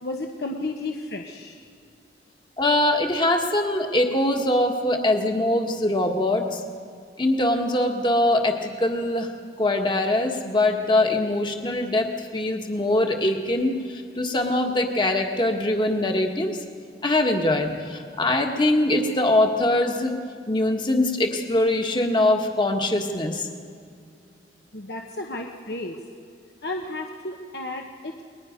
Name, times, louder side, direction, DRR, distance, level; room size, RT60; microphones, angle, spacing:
voice 1, 0.0-1.7 24.7-26.0 26.6-28.1, left 2 dB, 60° left, 2 dB, 1.2 m, -33 dB
voice 2, 2.6-6.6 7.2-9.3 9.6-16.6 17.0-20.1 20.5-23.5, left 1 dB, 25° left, 3 dB, 1.6 m, -22 dB
29.0 x 21.5 x 5.2 m, 2.3 s
head